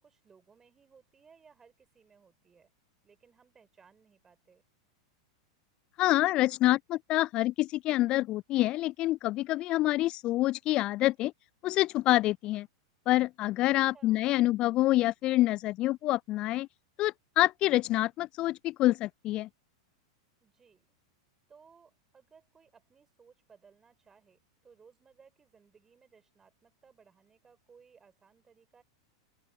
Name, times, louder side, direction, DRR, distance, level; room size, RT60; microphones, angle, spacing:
voice 1, 0.0-2.7 3.0-4.6 13.9-14.3 20.4-20.9 21.5-28.8, right 6 dB, 20° right, 5.8 m, -61 dB
voice 2, 6.0-11.3 11.6-12.7 13.1-16.7 17.0-19.5, left 16 dB, 40° left, 0.4 m, -27 dB
open air
figure-of-eight pair, 95°, 2 cm